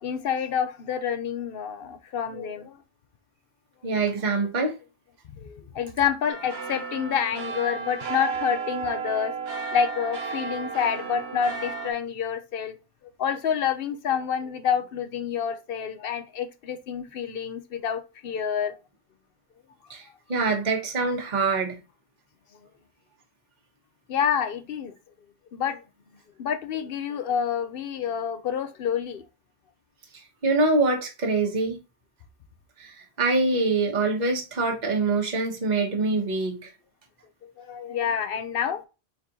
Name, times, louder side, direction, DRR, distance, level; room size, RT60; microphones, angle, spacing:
voice 1, 0.0-2.8 5.4-9.3 9.7-12.8 13.2-18.8 24.1-24.9 25.5-25.8 26.4-29.2 37.4-38.9, left 7 dB, 65° left, 0.8 m, -28 dB
voice 2, 3.8-4.7 19.9-21.8 30.1-31.8 32.8-36.7, right 3 dB, 45° right, 1.2 m, -25 dB
sound 1, 6.3-11.9, right 5 dB, 70° right, 1.0 m, -33 dB
4.3 x 4.1 x 2.8 m
omnidirectional pair, 1.1 m